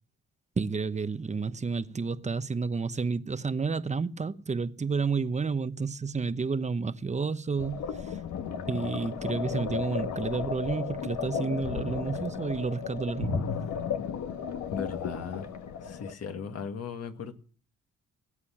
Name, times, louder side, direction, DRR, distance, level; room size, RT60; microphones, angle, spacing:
voice 1, 0.6-8.2 8.7-13.5, right 4 dB, 25° right, 0.9 m, -31 dB
sound 1, 7.6-16.1, left 7 dB, 70° left, 1.4 m, -34 dB
voice 2, 14.7-15.4 15.8-17.3, left 6 dB, 55° left, 2.0 m, -37 dB
19.5 x 8.4 x 7.3 m
cardioid pair, 90°, 30 cm